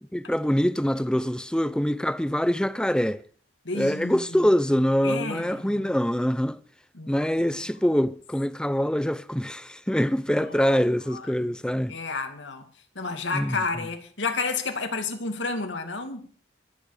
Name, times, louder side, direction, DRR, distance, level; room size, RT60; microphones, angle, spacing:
voice 1, 0.1-3.2 3.7-6.6 7.1-12.0 13.3-13.6, equal, 5° left, 0.7 m, -24 dB
voice 2, 3.6-4.5 5.0-5.9 6.9-7.3 10.3-10.8 11.1-11.5 11.9-12.7 13.0-16.3, left 4 dB, 90° left, 2.5 m, -31 dB
24.5 x 8.7 x 5.1 m
head